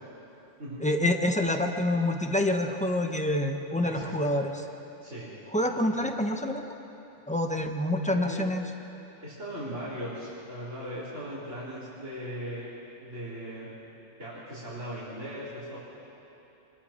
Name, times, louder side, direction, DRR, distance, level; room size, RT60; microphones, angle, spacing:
voice 1, 0.8-4.7 5.5-6.6 7.3-8.6, left 1 dB, 5° left, 4 dB, 1.1 m, -27 dB
voice 2, 3.8-4.3 5.0-5.3 5.8-5.9 8.1-8.4 9.2-12.7 13.0-13.7 14.2-15.8, equal, 85° right, -10 dB, 4.4 m, -38 dB
27.0 x 22.5 x 4.5 m, 3.0 s
omnidirectional pair, 1.2 m